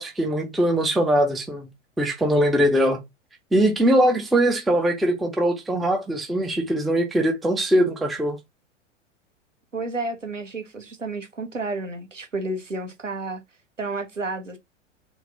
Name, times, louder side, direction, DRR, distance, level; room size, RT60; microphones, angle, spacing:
voice 1, 0.0-1.7 2.0-3.0 3.5-8.4, right 1 dB, ahead, 0.3 m, -21 dB
voice 2, 9.7-13.4 13.8-14.6, right 2 dB, 85° right, 1.2 m, -31 dB
3.1 x 3.0 x 3.7 m
figure-of-eight pair, 95°, 37 cm